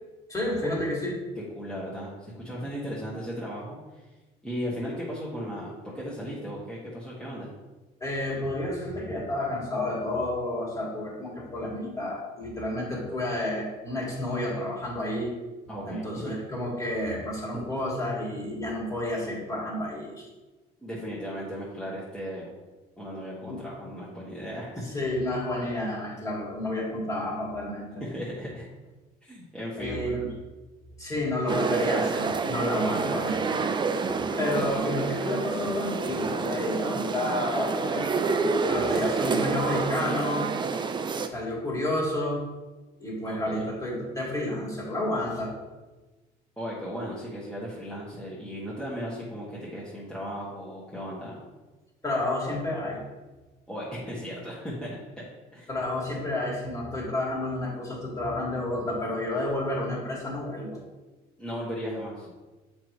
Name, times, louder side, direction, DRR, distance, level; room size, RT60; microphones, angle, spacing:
voice 1, 0.3-1.2 8.0-15.3 15.9-20.3 23.5-23.6 24.9-28.1 29.8-30.3 31.0-33.7 34.1-38.1 38.4-40.5 41.2-42.5 43.0-45.5 52.0-53.0 55.7-60.8, left 1 dB, 20° left, -3 dB, 2.2 m, -30 dB
voice 2, 1.5-4.0 4.4-7.5 15.7-16.3 20.8-22.5 23.0-24.8 28.0-28.7 29.2-30.2 43.2-43.7 46.6-51.4 53.7-55.2 55.5-55.7 61.4-62.3, equal, 5° left, -8 dB, 1.5 m, -36 dB
sound 1, 31.5-41.3, right 4 dB, 25° right, 0.4 m, -28 dB
7.3 x 5.2 x 3.2 m, 1.2 s
cardioid pair, 110°, 17 cm